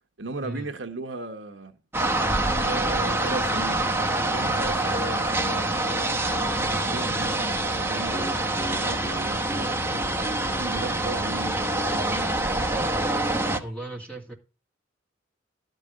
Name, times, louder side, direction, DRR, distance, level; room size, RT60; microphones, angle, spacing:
voice 1, 0.2-1.7 2.6-3.8 4.3-8.4 8.7-10.0 10.4-12.3, right 3 dB, 65° right, 1.2 m, -37 dB
sound 1, 1.9-13.6, right 2 dB, 10° right, 1.0 m, -26 dB
Piano, 4.9-11.4, left 1 dB, 35° left, 1.8 m, -38 dB
voice 2, 13.6-14.3, right 1 dB, 5° left, 2.6 m, -36 dB
12.0 x 5.3 x 6.3 m
head